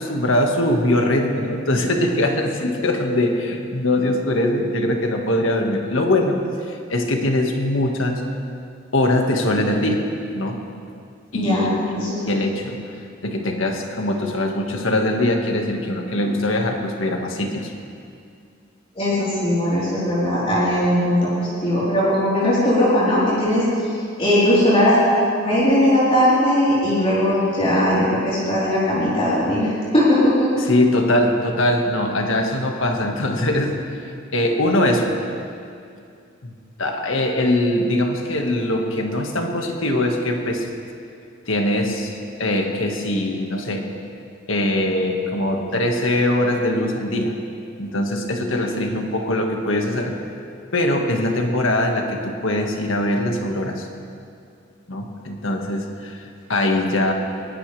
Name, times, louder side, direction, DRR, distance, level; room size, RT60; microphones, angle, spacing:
voice 1, 0.0-8.2 8.9-10.1 10.3-10.6 11.3-11.7 12.3-12.8 13.2-17.7 30.6-33.8 34.3-35.1 36.4-36.5 36.8-40.7 41.5-43.9 44.5-47.4 47.8-50.2 50.7-53.9 54.9-56.2 56.5-57.1, left 1 dB, 75° left, 2 dB, 1.8 m, -22 dB
voice 2, 11.3-11.7 11.9-12.2 19.0-23.6 24.2-30.6, left 1 dB, 30° left, -10 dB, 4.1 m, -19 dB
22.5 x 18.5 x 3.4 m, 2.4 s
head